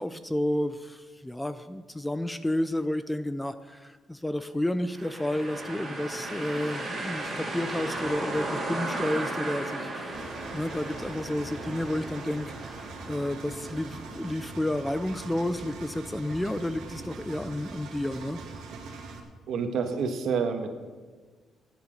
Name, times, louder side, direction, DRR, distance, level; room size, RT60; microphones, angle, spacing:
voice 1, 0.0-18.4, left 1 dB, 5° left, 11 dB, 0.4 m, -31 dB
sound 1, 4.9-14.7, right 2 dB, 20° right, 3.4 m, -36 dB
Engine, 10.1-19.2, right 4 dB, 80° right, 2.2 m, -42 dB
voice 2, 19.5-20.7, right 5 dB, 60° right, 6 dB, 1.6 m, -28 dB
15.5 x 10.0 x 6.5 m, 1.4 s
cardioid pair, 180°, 0 cm